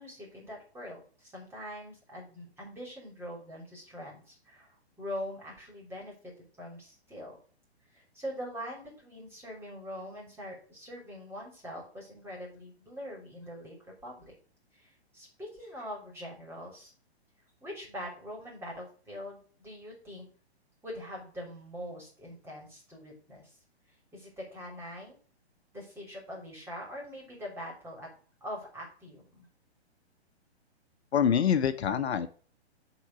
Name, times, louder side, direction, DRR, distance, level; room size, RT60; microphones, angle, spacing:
voice 1, 0.0-7.4 7.9-14.3 14.7-16.9 17.6-20.3 20.8-23.6 24.1-25.2 25.7-28.1 28.4-29.5, equal, 5° right, -2 dB, 3.0 m, -43 dB
voice 2, 31.1-32.3, left 8 dB, 75° left, 9 dB, 0.8 m, -25 dB
7.2 x 3.9 x 5.8 m, 0.41 s
hypercardioid pair, 140°, 33 cm